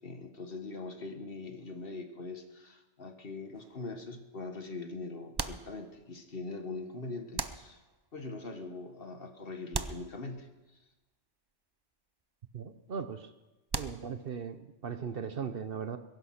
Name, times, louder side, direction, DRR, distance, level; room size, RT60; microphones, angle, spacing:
voice 1, 0.0-7.8 8.1-10.5, left 3 dB, 50° left, 6 dB, 1.6 m, -42 dB
sound 1, 3.5-4.1 5.3-6.3 7.3-8.2 9.7-10.8 13.7-14.5, right 4 dB, 30° right, 0.4 m, -39 dB
voice 2, 12.5-13.3 13.7-16.0, right 6 dB, 55° right, 10 dB, 0.9 m, -38 dB
22.0 x 11.0 x 5.8 m, 1.0 s
omnidirectional pair, 1.3 m